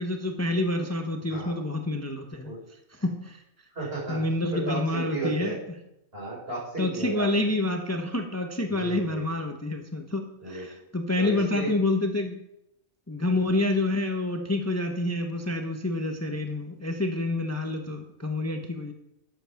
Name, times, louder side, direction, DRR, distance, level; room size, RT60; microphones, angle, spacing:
voice 1, 0.0-2.5 3.0-3.4 4.1-5.5 6.8-12.4 13.1-18.9, left 2 dB, 15° left, 4 dB, 0.9 m, -28 dB
voice 2, 3.7-4.2 4.5-5.6 6.1-7.5 8.7-9.2 10.4-10.7 11.2-11.7, right 3 dB, 50° right, -4 dB, 5.3 m, -34 dB
12.5 x 8.0 x 5.9 m, 0.84 s
omnidirectional pair, 1.3 m